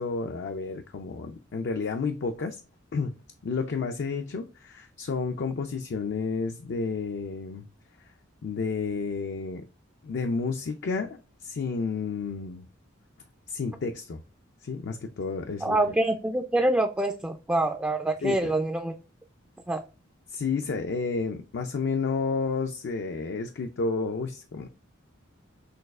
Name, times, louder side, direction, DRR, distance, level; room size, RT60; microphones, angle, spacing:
voice 1, 0.0-2.6 2.9-3.1 3.4-7.6 8.4-9.6 10.0-12.7 13.5-14.2 14.6-15.8 18.2-18.5 20.3-24.7, left 4 dB, 60° left, 5 dB, 0.4 m, -31 dB
voice 2, 15.6-18.9 19.7-19.8, right 2 dB, 10° right, 4 dB, 0.3 m, -26 dB
6.3 x 2.3 x 2.3 m, 0.32 s
head